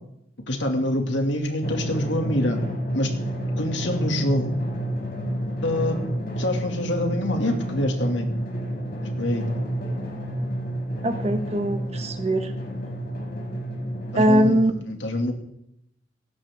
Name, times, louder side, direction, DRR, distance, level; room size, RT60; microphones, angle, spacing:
voice 1, 0.5-2.6 2.9-3.1 3.6-4.6 5.6-6.0 6.4-8.3 9.2-9.4 14.1-15.3, left 1 dB, 85° left, 3 dB, 2.5 m, -25 dB
Drum, 1.6-14.6, right 1 dB, 55° left, 4.8 m, -30 dB
voice 2, 11.0-12.5 14.1-14.7, right 1 dB, 35° right, 6 dB, 1.5 m, -21 dB
18.5 x 16.5 x 3.7 m, 0.78 s
head